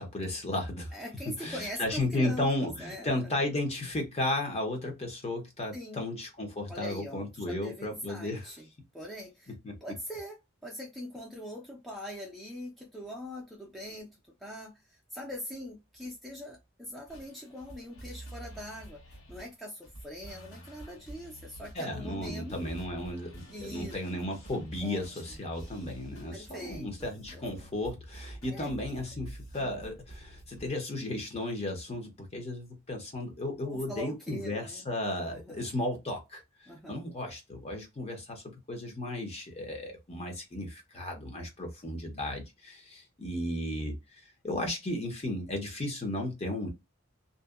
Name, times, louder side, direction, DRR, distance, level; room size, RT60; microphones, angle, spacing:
voice 1, 0.0-1.0 1.4-8.5 9.6-9.7 21.7-36.4 36.9-44.0 44.4-46.7, left 1 dB, 30° left, 0.8 m, -34 dB
voice 2, 0.9-3.3 5.7-6.1 6.7-8.7 8.9-9.5 9.8-14.1 14.4-19.0 19.3-22.5 23.5-24.0 24.8-25.2 26.3-27.4 28.4-28.7 29.6-29.9 33.6-34.9 35.3-35.6 36.7-37.0, equal, ahead, 0.5 m, -42 dB
sound 1, 17.1-30.7, right 1 dB, 80° left, 1.5 m, -48 dB
2.6 x 2.2 x 2.3 m
head